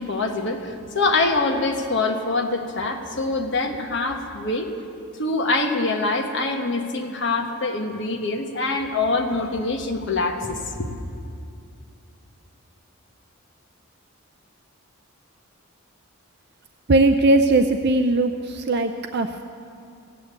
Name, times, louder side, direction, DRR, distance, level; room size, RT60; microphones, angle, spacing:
voice 1, 0.0-4.7 5.2-10.9, left 3 dB, 55° left, 4 dB, 1.2 m, -24 dB
voice 2, 16.9-19.4, right 2 dB, 50° right, 7 dB, 0.5 m, -19 dB
15.5 x 8.4 x 9.4 m, 2.5 s
head